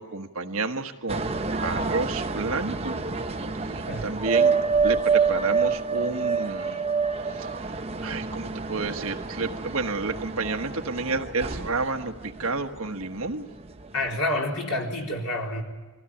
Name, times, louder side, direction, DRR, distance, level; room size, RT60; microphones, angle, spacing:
voice 1, 0.0-2.9 3.6-6.8 7.3-13.5, right 3 dB, 65° right, 5 dB, 1.4 m, -31 dB
sound 1, 1.1-13.3 13.7-14.1, right 5 dB, 25° right, 0.9 m, -27 dB
voice 2, 13.9-15.6, left 1 dB, 90° left, 0 dB, 4.0 m, -28 dB
22.5 x 16.5 x 9.9 m, 1.2 s
head